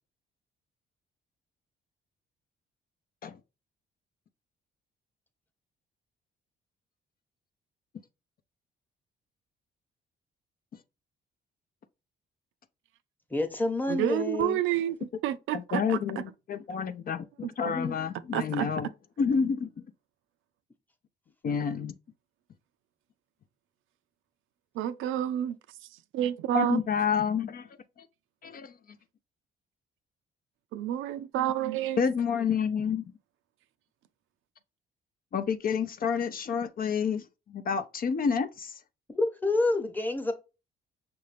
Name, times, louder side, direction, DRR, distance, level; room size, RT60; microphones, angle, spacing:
voice 1, 13.3-14.6 17.7-18.0 39.1-40.3, left 2 dB, 10° left, 0.9 m, -28 dB
voice 2, 13.9-14.9 15.2-16.0 17.7-17.8 18.3-18.7 24.8-25.6 26.1-26.8 30.7-32.0, right 11 dB, 85° right, 0.4 m, -29 dB
voice 3, 15.5-18.9 19.2-19.8 21.4-21.9 26.5-27.7 28.0-28.1 28.4-28.7 32.0-33.0 35.3-38.8, left 6 dB, 45° left, 0.6 m, -29 dB
5.7 x 2.6 x 3.2 m
cardioid pair, 90°, 20 cm